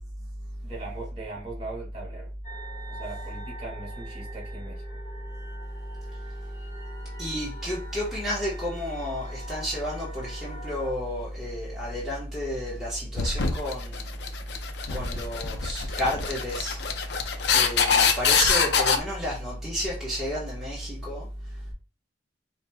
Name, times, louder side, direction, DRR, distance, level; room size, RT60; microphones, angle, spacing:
voice 1, 0.6-2.3 2.9-4.8, right 3 dB, 35° right, 2.1 m, -40 dB
sound 1, 2.4-10.9, right 1 dB, 25° left, 1.7 m, -45 dB
voice 2, 7.2-14.0 14.9-16.8 17.5-21.2, equal, ahead, 1.2 m, -31 dB
sound 2, 13.2-19.0, left 6 dB, 75° left, 0.6 m, -24 dB
4.8 x 3.0 x 2.3 m
head